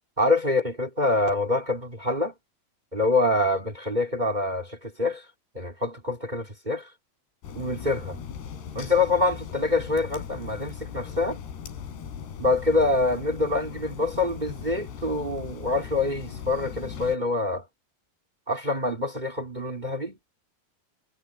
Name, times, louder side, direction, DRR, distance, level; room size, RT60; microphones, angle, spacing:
voice 1, 0.2-2.3 2.9-5.2 5.5-6.9 7.5-8.2 8.7-11.4 12.4-17.6 18.5-20.2, left 2 dB, 20° right, 1.3 m, -25 dB
sound 1, 7.4-17.2, left 7 dB, 75° left, 5.0 m, -39 dB
omnidirectional pair, 5.0 m